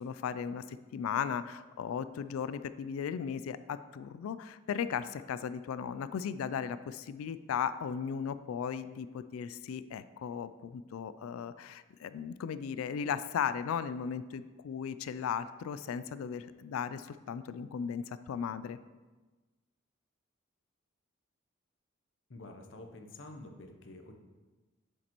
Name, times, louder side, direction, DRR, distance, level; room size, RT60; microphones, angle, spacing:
voice 1, 0.0-18.8, left 7 dB, 85° left, 14 dB, 0.3 m, -36 dB
voice 2, 22.3-24.1, left 2 dB, 60° left, 4 dB, 0.8 m, -48 dB
7.4 x 6.6 x 3.0 m, 1.2 s
head